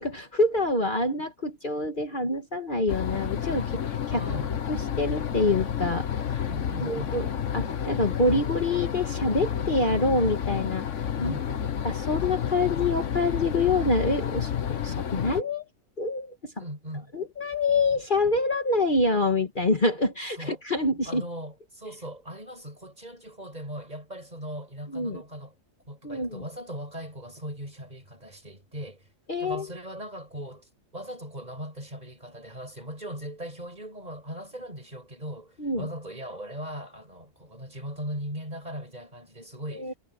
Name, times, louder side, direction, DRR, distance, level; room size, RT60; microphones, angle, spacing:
voice 1, 0.0-4.2 4.7-6.5 6.8-7.3 7.5-10.8 11.2-11.4 11.8-14.5 14.8-15.7 16.0-16.5 17.1-21.2 24.9-25.2 26.0-26.4 29.3-29.7 35.6-35.9 39.7-39.9, left 2 dB, 40° left, 1.8 m, -26 dB
sound 1, 2.9-15.4, left 8 dB, 65° left, 1.4 m, -30 dB
voice 2, 4.1-4.6 6.4-7.2 11.2-11.7 16.6-17.1 20.4-20.6 21.1-25.5 25.9-29.1 29.4-40.0, equal, 30° right, 8.0 m, -39 dB
omnidirectional pair, 1.4 m